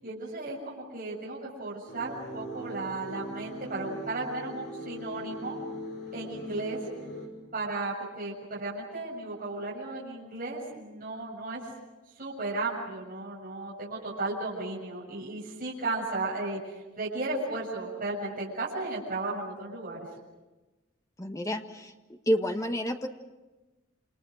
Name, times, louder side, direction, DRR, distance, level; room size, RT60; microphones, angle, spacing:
voice 1, 0.0-5.6 6.1-6.8 7.5-11.7 12.2-20.1, right 2 dB, 40° right, -5 dB, 7.2 m, -35 dB
sound 1, 1.9-7.3, equal, 40° left, 5.8 m, -40 dB
voice 2, 21.2-21.9 22.3-23.1, equal, 15° left, 5 dB, 1.6 m, -29 dB
28.5 x 27.5 x 6.5 m, 1.1 s
head